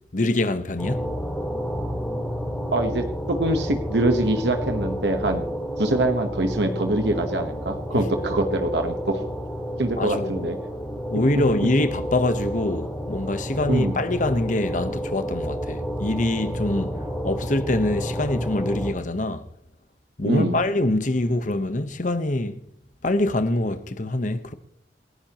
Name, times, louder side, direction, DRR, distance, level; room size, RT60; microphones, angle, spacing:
voice 1, 0.1-1.1 7.9-8.0 10.0-10.5 11.1-16.9 17.2-19.4 20.2-22.6 23.0-24.5, left 1 dB, 45° left, 1.1 m, -24 dB
sound 1, 0.8-18.9, equal, 5° left, 4.0 m, -30 dB
voice 2, 2.7-5.4 5.8-9.2 9.8-10.6 13.7-14.0 20.3-20.6, right 2 dB, 75° right, 1.3 m, -24 dB
28.0 x 10.5 x 3.0 m
head